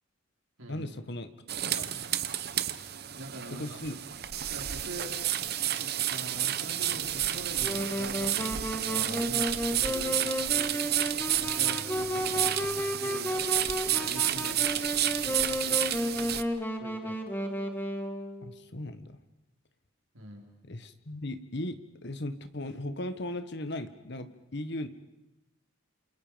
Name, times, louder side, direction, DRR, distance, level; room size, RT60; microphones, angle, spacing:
voice 1, 0.7-1.3 1.7-2.1 3.5-4.0 18.4-19.2 20.6-24.9, left 1 dB, 55° left, 11 dB, 1.5 m, -37 dB
sound 1, 1.5-16.4, right 11 dB, 50° right, 0.9 m, -31 dB
voice 2, 3.1-3.8 4.5-5.3 5.7-10.8 11.3-13.5 13.8-14.6 15.2-16.0 16.7-17.2 20.1-20.4, right 1 dB, 80° right, 1 dB, 4.9 m, -44 dB
Wind instrument woodwind instrument, 7.6-18.5, equal, 10° left, 1.6 m, -33 dB
28.5 x 28.0 x 5.2 m, 0.92 s
head